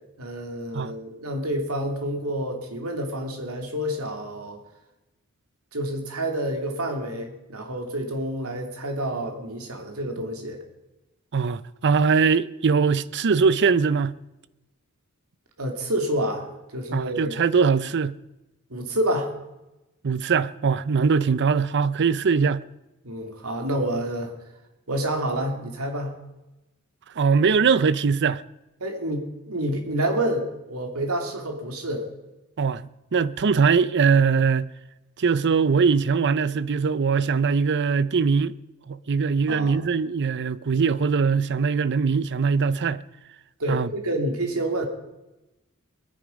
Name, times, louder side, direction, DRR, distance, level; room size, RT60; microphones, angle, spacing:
voice 1, 0.2-4.6 5.7-10.6 15.6-16.5 16.7-17.4 18.7-19.3 23.0-24.3 24.9-26.1 28.8-32.1 39.5-39.9 43.6-44.9, right 1 dB, 85° right, 2.7 m, -28 dB
voice 2, 11.3-14.2 16.9-18.1 20.0-22.6 27.2-28.4 32.6-34.7 35.2-38.5 38.9-43.0 43.7-43.9, right 5 dB, 55° right, 0.5 m, -21 dB
21.5 x 10.0 x 5.2 m
head